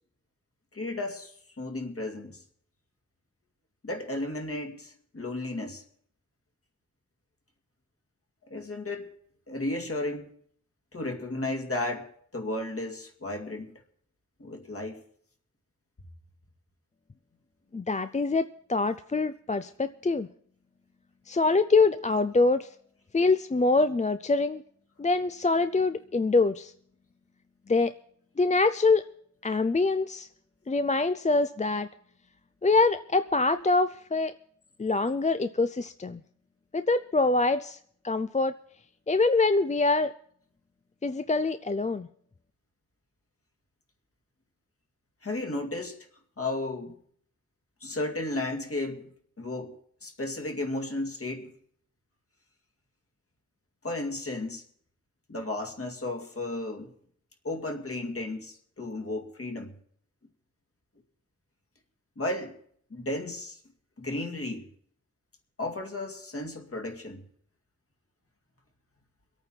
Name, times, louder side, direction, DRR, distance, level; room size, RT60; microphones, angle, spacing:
voice 1, 0.7-2.4 3.8-5.8 8.5-9.1 9.5-10.3 10.9-13.8 14.4-15.0 45.2-46.0 46.4-47.0 47.8-49.1 49.4-49.8 50.0-51.5 53.8-54.6 55.3-56.9 57.4-59.8 62.2-62.6 62.9-63.6 64.0-64.7 65.6-67.2, left 2 dB, 50° left, 3 dB, 2.3 m, -34 dB
voice 2, 17.7-20.3 21.3-22.7 23.1-24.6 25.0-26.7 27.7-27.9 28.4-29.0 29.4-30.3 30.7-31.9 32.6-34.3 34.8-36.2 36.7-37.8 38.0-38.5 39.1-40.1 41.0-42.1, left 3 dB, 25° left, 11 dB, 0.5 m, -24 dB
24.0 x 8.9 x 4.5 m, 0.62 s
wide cardioid pair, 70°, 30 cm